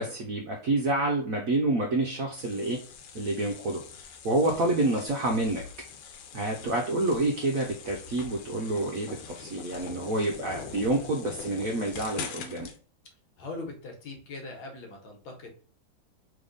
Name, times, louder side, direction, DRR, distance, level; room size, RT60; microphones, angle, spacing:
voice 1, 0.0-2.8 3.1-3.8 4.2-5.6 6.3-12.7, right 2 dB, 65° right, 0 dB, 0.8 m, -28 dB
sound 1, 2.4-12.8, left 6 dB, 90° left, 1.6 m, -43 dB
voice 2, 4.3-4.7 6.9-7.2 13.4-15.5, left 2 dB, 75° left, 2 dB, 1.8 m, -42 dB
3.5 x 3.4 x 3.8 m, 0.42 s
omnidirectional pair, 2.3 m